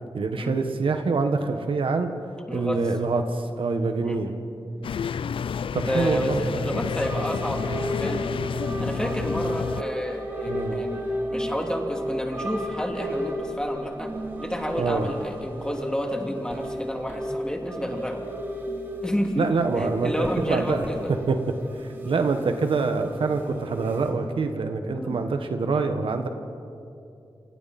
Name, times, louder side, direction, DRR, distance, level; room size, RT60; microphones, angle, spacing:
voice 1, 0.1-2.1 2.5-4.3 5.7-6.8 10.5-10.8 14.8-15.1 19.4-20.8 21.1-26.3, right 4 dB, 85° right, 6 dB, 1.6 m, -26 dB
voice 2, 2.5-2.8 4.0-4.2 5.8-8.2 8.8-11.0 11.3-14.1 14.4-18.2 19.0-19.5 19.8-21.1 24.9-25.2, equal, 10° left, 1 dB, 3.1 m, -30 dB
sound 1, 4.8-9.8, left 6 dB, 85° left, 0.4 m, -30 dB
sound 2, 6.8-24.1, equal, 25° right, 5.0 m, -34 dB
28.5 x 27.0 x 4.4 m, 2.6 s
wide cardioid pair, 90°, 9 cm